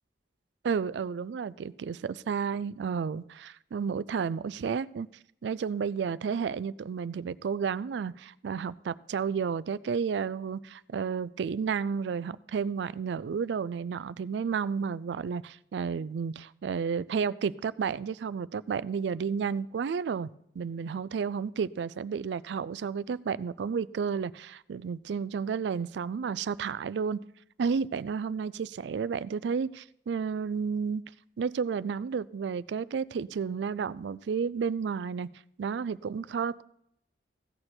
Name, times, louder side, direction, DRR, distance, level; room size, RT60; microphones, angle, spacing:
voice 1, 0.6-5.1 5.4-20.3 20.6-27.2 27.6-31.0 31.4-35.3 35.6-36.6, right 6 dB, 70° right, 19 dB, 0.3 m, -32 dB
16.0 x 6.6 x 4.3 m, 0.76 s
head